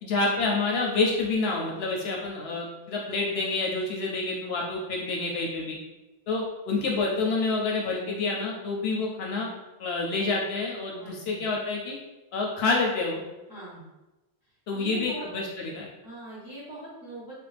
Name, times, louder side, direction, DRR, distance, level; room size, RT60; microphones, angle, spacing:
voice 1, 0.0-5.8 6.3-9.5 9.8-12.0 12.3-13.2 14.7-15.9, left 3 dB, 70° left, -1 dB, 0.8 m, -28 dB
voice 2, 11.0-11.4 13.5-13.9 14.7-15.3 16.0-17.3, right 2 dB, 20° right, -8 dB, 1.1 m, -41 dB
3.3 x 2.5 x 3.3 m, 1.0 s
omnidirectional pair, 1.2 m